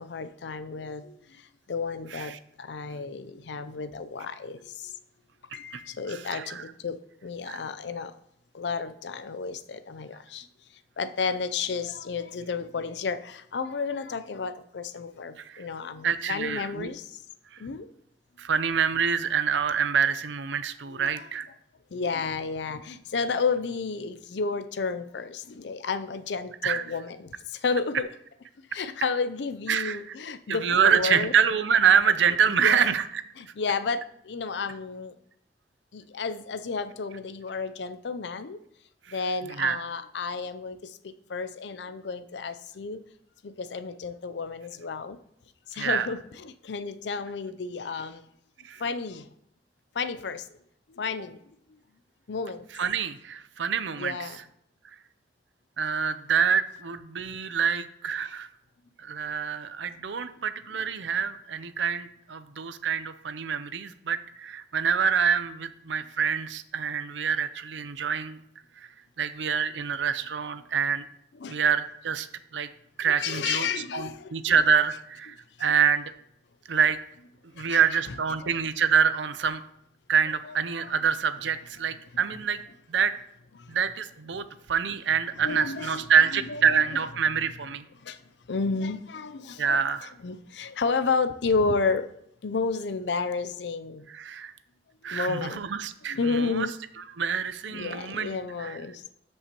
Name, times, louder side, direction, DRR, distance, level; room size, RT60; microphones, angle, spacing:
voice 1, 0.0-4.9 5.5-8.1 8.5-10.5 11.0-17.2 17.6-17.9 20.9-21.3 21.9-28.1 28.7-31.3 32.5-32.9 33.4-35.2 35.9-38.6 39.1-43.0 43.4-45.2 45.7-48.2 48.8-49.3 49.9-50.5 50.9-51.4 51.7-51.8 52.3-52.6 54.0-54.4 60.7-60.8 71.3-71.6 73.0-74.6 77.6-77.8 78.3-78.5 80.4-81.0 83.6-83.8 85.4-86.1 86.3-87.0 87.9-88.2 88.5-89.8 90.2-92.1 92.4-94.1 95.0-95.6 96.1-96.7 97.7-99.0, left 4 dB, 70° left, 12 dB, 0.5 m, -32 dB
voice 2, 6.1-6.6 7.5-7.6 15.4-15.6 16.0-16.9 18.4-21.5 26.6-26.8 29.7-30.0 30.5-33.2 39.5-39.8 45.7-46.1 48.6-48.8 52.7-54.2 55.8-58.5 59.0-68.4 68.8-68.9 69.2-71.1 71.5-72.3 72.5-72.7 73.0-73.7 73.9-75.3 75.6-76.1 76.7-77.0 77.6-79.6 80.1-82.6 82.9-83.1 83.7-87.8 89.6-90.1 94.1-94.5 95.0-96.7 97.2-98.8, right 7 dB, 85° right, 12 dB, 0.6 m, -26 dB
12.5 x 5.5 x 3.0 m, 0.74 s
head